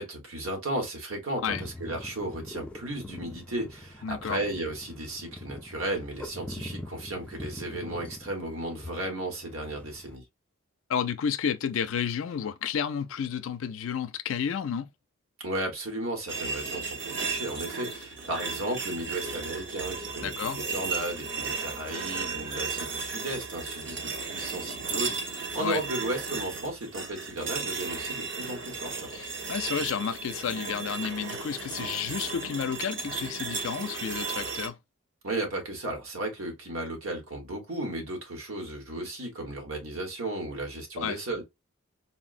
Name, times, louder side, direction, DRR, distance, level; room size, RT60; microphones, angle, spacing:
voice 1, 0.0-10.2 15.4-29.1 35.2-41.4, right 1 dB, 80° right, 1.3 m, -34 dB
sound 1, 1.5-10.2, left 1 dB, 5° left, 0.4 m, -43 dB
voice 2, 4.0-4.4 10.9-14.9 20.2-20.6 25.6-25.8 29.1-34.8 41.0-41.2, left 7 dB, 70° left, 0.4 m, -31 dB
sound 2, 16.3-34.7, right 4 dB, 55° right, 0.8 m, -35 dB
4.1 x 2.0 x 2.4 m
head